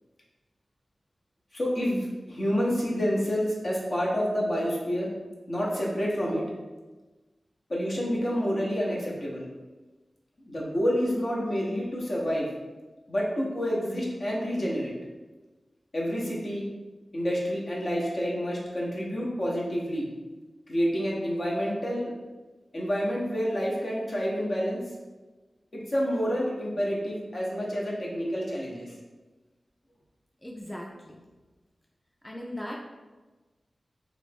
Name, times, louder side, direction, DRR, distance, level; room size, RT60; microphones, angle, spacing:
voice 1, 1.5-5.1 5.5-6.4 7.7-9.5 10.4-12.5 13.1-14.9 15.9-16.7 17.1-20.0 20.7-22.1 22.7-24.8 25.7-28.9, equal, 55° left, -4 dB, 0.9 m, -28 dB
voice 2, 30.4-31.2 32.2-32.8, left 1 dB, 10° left, -2 dB, 0.4 m, -38 dB
3.2 x 2.5 x 3.4 m, 1.2 s
wide cardioid pair, 70°, 0 cm